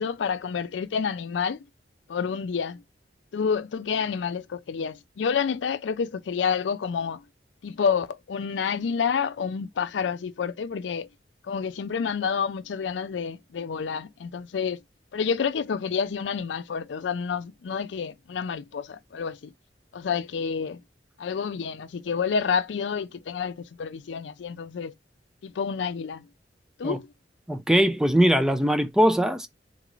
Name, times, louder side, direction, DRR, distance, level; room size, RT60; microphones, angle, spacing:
voice 1, 0.0-1.6 2.1-2.8 3.3-7.2 7.6-11.1 11.5-14.8 15.1-19.5 19.9-20.8 21.2-24.9 25.4-26.3 26.8-27.1, left 6 dB, 85° left, 0.4 m, -29 dB
voice 2, 27.5-29.5, equal, 5° right, 0.4 m, -21 dB
4.0 x 2.4 x 3.0 m
head